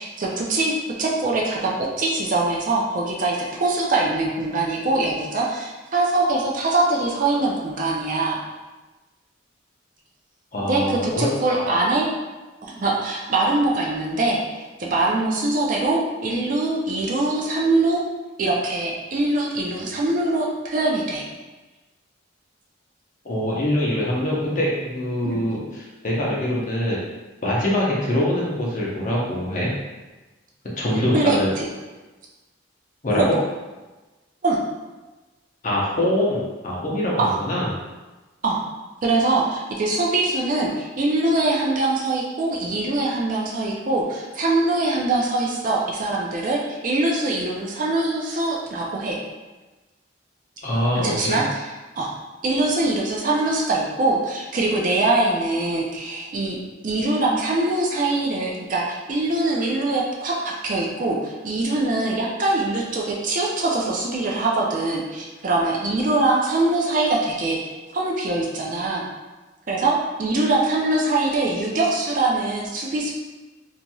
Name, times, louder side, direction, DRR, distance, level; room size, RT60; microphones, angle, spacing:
voice 1, 0.0-8.4 10.7-12.1 12.6-18.0 18.4-21.2 25.2-25.4 30.9-31.7 33.2-33.3 34.4-34.6 37.2-37.4 38.4-38.6 39.0-49.2 51.0-51.7 52.0-52.1 52.4-56.6 56.8-69.0 69.7-73.1, right 2 dB, 45° right, -2 dB, 0.4 m, -23 dB
voice 2, 10.5-11.8 23.2-27.0 27.4-29.7 30.8-31.5 33.0-33.2 35.6-37.7 50.6-51.4, left 1 dB, 40° left, -5 dB, 0.7 m, -24 dB
2.9 x 2.7 x 2.2 m, 1.2 s
head